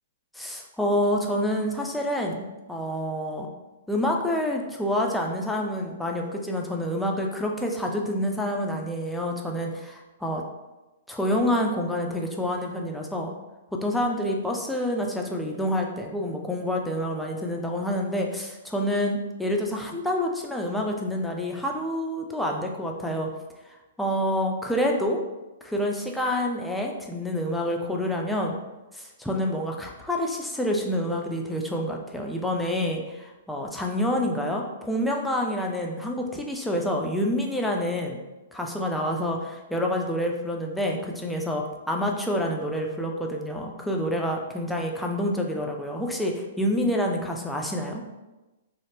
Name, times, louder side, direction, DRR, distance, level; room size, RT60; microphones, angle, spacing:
voice 1, 0.3-3.5 3.9-10.4 11.1-13.3 13.8-23.3 23.7-25.2 25.6-28.6 28.9-38.2 38.5-48.0, left 1 dB, 5° left, 0 dB, 0.4 m, -28 dB
2.6 x 2.0 x 3.4 m, 1.1 s
hypercardioid pair, 120°, 0 cm